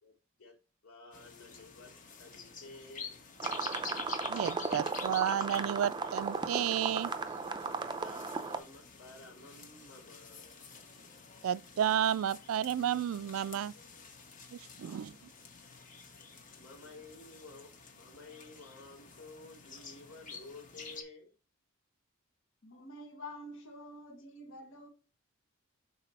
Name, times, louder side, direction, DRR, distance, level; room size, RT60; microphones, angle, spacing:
voice 1, 0.0-0.6 0.8-1.9 2.2-3.2 7.7-10.6 14.8-15.2 16.5-21.3, left 2 dB, 85° left, 3.0 m, -53 dB
sound 1, 1.1-21.0, left 5 dB, 40° left, 1.1 m, -49 dB
sound 2, 3.4-8.6, right 4 dB, 20° right, 0.5 m, -36 dB
voice 2, 4.3-7.1 11.4-13.7 14.5-15.1, right 9 dB, 80° right, 0.3 m, -32 dB
voice 3, 22.6-24.9, left 1 dB, 65° left, 1.3 m, -48 dB
6.0 x 4.1 x 4.2 m
head